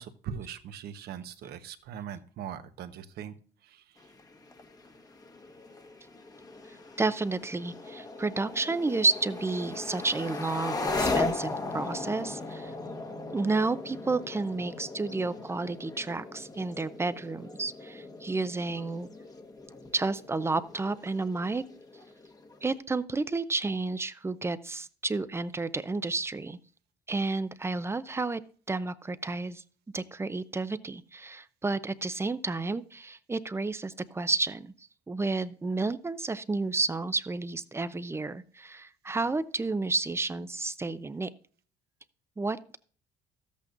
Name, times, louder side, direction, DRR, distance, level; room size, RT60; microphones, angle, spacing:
voice 1, 0.0-3.3 3.6-4.1, right 8 dB, 70° right, 10 dB, 1.1 m, -41 dB
sound 1, 4.0-22.8, left 3 dB, 20° left, 1.2 m, -38 dB
voice 2, 7.0-12.7 13.3-19.1 19.9-21.6 22.6-26.6 27.1-28.4 28.7-29.6 29.9-34.7 35.1-41.3 42.4-42.8, right 3 dB, 15° right, 14 dB, 0.6 m, -31 dB
13.5 x 8.4 x 2.6 m, 0.43 s
cardioid pair, 110°, 17 cm